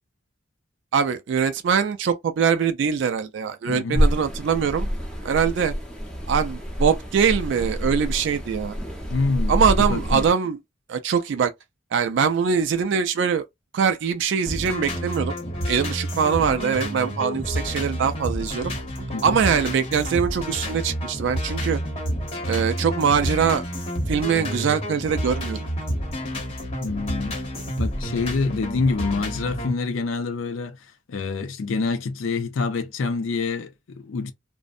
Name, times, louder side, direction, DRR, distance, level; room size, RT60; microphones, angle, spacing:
voice 1, 0.9-4.9 5.2-5.7 6.3-8.8 9.5-10.6 10.9-11.5 11.9-13.4 13.7-15.3 15.7-18.7 19.2-21.8 22.5-23.6 24.1-25.6, right 6 dB, 60° right, 0.3 m, -22 dB
voice 2, 3.7-4.1 9.1-9.6 9.9-10.2 19.1-19.4 26.8-27.4 27.8-34.3, left 4 dB, 80° left, 0.4 m, -26 dB
sound 1, 3.9-10.3, equal, 5° left, 0.6 m, -27 dB
sound 2, 14.5-29.7, equal, 30° left, 0.9 m, -29 dB
2.5 x 2.0 x 2.4 m
head